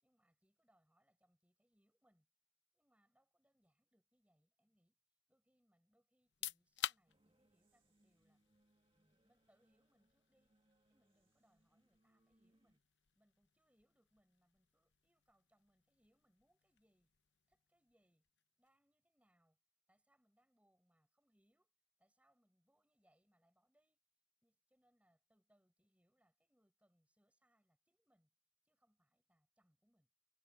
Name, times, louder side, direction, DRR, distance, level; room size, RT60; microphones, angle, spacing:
voice 1, 0.0-2.3 2.7-5.0 5.3-8.4 8.9-10.5 10.9-12.8 13.2-17.1 17.5-18.3 18.6-19.6 19.9-21.7 22.0-24.0 24.4-28.3 28.6-30.1, equal, 10° right, 7.2 m, -79 dB
sound 1, 6.2-18.8, left 10 dB, 85° left, 0.8 m, -53 dB
sound 2, 7.1-12.8, right 1 dB, 30° right, 2.2 m, -79 dB
head